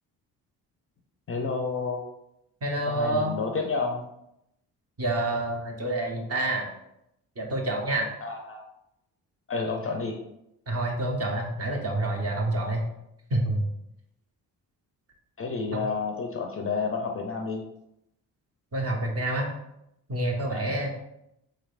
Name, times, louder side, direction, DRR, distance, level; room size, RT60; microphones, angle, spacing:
voice 1, 1.3-2.0 2.9-4.1 8.2-8.6 9.5-10.2 15.4-17.6 20.5-20.7, left 4 dB, 30° left, 2 dB, 0.5 m, -30 dB
voice 2, 2.6-3.4 5.0-6.7 7.4-8.1 10.7-12.9 13.3-13.6 15.7-15.8 18.7-19.5 20.1-20.9, right 1 dB, 30° right, 1 dB, 0.8 m, -28 dB
3.1 x 3.1 x 2.4 m, 0.83 s
hypercardioid pair, 45°, 47 cm